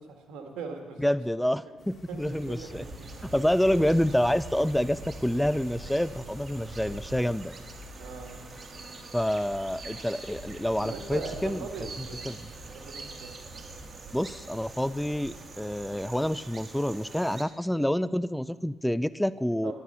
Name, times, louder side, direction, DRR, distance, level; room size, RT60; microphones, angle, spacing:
voice 1, 0.0-1.0 1.4-3.5 3.8-3.9 8.0-8.4 10.8-12.3 12.7-13.3 19.6-19.7, right 5 dB, 90° right, 4 dB, 1.8 m, -41 dB
voice 2, 1.0-2.8 3.3-7.6 9.1-11.7 12.3-12.4 14.1-19.7, equal, 5° left, 17 dB, 0.3 m, -27 dB
sound 1, 1.8-11.8, left 4 dB, 40° left, 3.9 m, -52 dB
sound 2, 2.2-17.4, right 3 dB, 35° right, 1.5 m, -43 dB
12.0 x 11.5 x 5.7 m, 1.4 s
cardioid pair, 90°, 0 cm